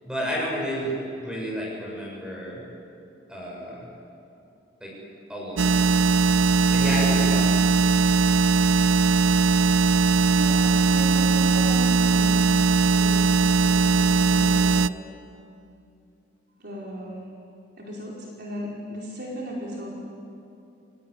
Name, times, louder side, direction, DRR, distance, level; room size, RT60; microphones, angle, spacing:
voice 1, 0.0-2.6 3.3-3.9 4.8-4.9 5.3-6.0 6.7-7.6, equal, 5° right, -3 dB, 6.7 m, -31 dB
sound 1, 5.6-14.9, right 4 dB, 65° right, 0.5 m, -20 dB
voice 2, 10.3-12.5 12.9-15.1 16.6-17.3 17.8-19.9, equal, 50° right, -3 dB, 4.7 m, -36 dB
29.5 x 18.5 x 9.9 m, 2.6 s
head